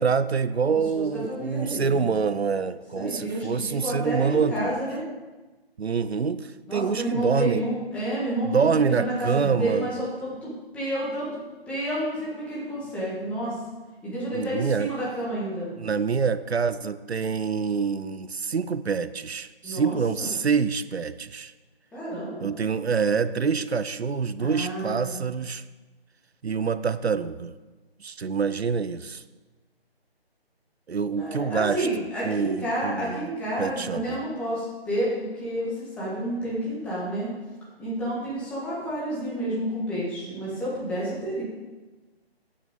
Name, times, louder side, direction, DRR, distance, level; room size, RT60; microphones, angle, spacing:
voice 1, 0.0-4.7 5.8-7.7 8.5-9.9 14.3-14.9 15.8-21.5 22.4-25.6 26.4-27.5 28.0-29.2 30.9-31.9 32.2-33.3 33.6-34.2, right 5 dB, 75° right, 14 dB, 0.7 m, -26 dB
voice 2, 0.7-2.1 3.0-5.0 6.7-11.4 11.7-13.6 14.0-15.7 19.6-20.3 21.9-22.5 24.4-25.2 31.2-37.3 37.8-41.4, right 1 dB, 5° left, -7 dB, 1.7 m, -30 dB
14.0 x 8.6 x 3.8 m, 1.2 s
figure-of-eight pair, 160°, 32 cm